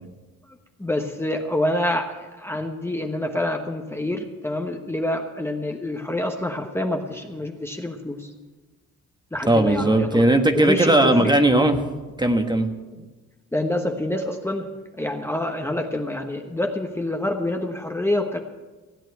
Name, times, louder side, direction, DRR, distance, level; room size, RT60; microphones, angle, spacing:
voice 1, 0.8-8.3 9.3-10.2 10.5-11.3 13.0-13.1 13.5-14.7 15.0-18.4, left 1 dB, 10° left, 3 dB, 1.1 m, -27 dB
voice 2, 9.5-11.8 12.2-12.7, right 1 dB, 15° right, 6 dB, 1.3 m, -18 dB
16.0 x 8.8 x 8.0 m, 1.3 s
cardioid pair, 90°, 30 cm